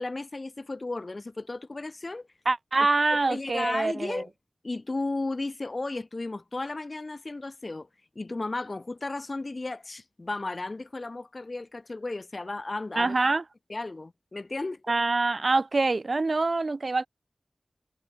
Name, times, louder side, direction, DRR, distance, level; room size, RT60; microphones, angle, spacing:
voice 1, 0.0-2.3 3.1-4.3 4.6-7.9 8.1-13.1 13.7-14.8, left 2 dB, 45° left, 4.5 m, -34 dB
voice 2, 2.5-4.2 13.0-13.4 14.9-17.1, right 3 dB, 55° right, 0.7 m, -25 dB
wide cardioid pair, 75°, 0 cm